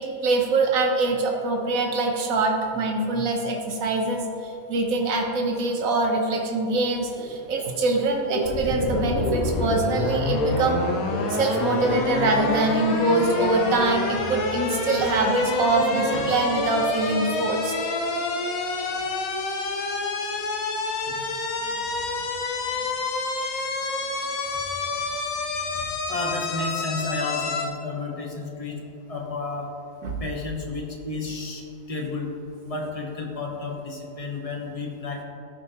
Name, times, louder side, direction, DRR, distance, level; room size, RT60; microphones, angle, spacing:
voice 1, 0.0-10.8 11.3-17.7 21.1-21.2 30.0-30.2, right 2 dB, 75° right, 1 dB, 1.4 m, -24 dB
Subway metro underground, 7.2-16.9, right 1 dB, ahead, 1.4 m, -34 dB
sound 1, 8.4-27.7, left 3 dB, 90° left, 1.3 m, -28 dB
voice 2, 26.1-28.8 29.1-29.7 30.2-32.3 32.7-35.2, left 3 dB, 30° left, 0 dB, 0.9 m, -31 dB
13.5 x 5.1 x 2.9 m, 2.9 s
omnidirectional pair, 1.5 m